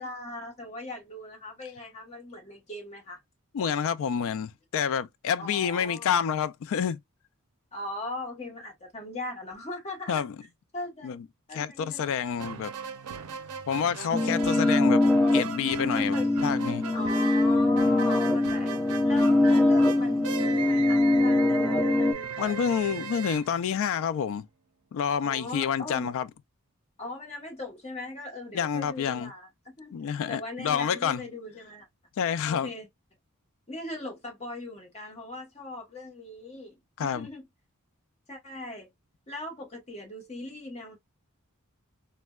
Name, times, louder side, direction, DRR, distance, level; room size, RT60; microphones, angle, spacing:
voice 1, 0.0-3.2 5.4-6.2 7.7-10.2 10.7-11.2 11.5-12.1 15.9-16.3 16.9-18.7 19.0-22.6 23.0-23.1 25.2-26.1 27.0-29.9 30.3-31.9 32.5-32.9 33.7-37.5 38.3-38.9 39.3-41.0, left 2 dB, 30° left, 1.1 m, -39 dB
voice 2, 3.5-7.0 10.1-10.4 11.0-11.2 11.5-12.7 13.7-15.0 15.3-16.9 22.4-24.5 24.9-26.3 28.5-29.3 29.9-31.2 32.2-32.7 37.0-37.3, left 7 dB, 65° left, 0.3 m, -28 dB
sound 1, 12.4-24.2, right 6 dB, 80° right, 0.5 m, -38 dB
sound 2, 14.1-22.1, left 2 dB, 10° left, 0.5 m, -23 dB
4.2 x 2.1 x 2.2 m
head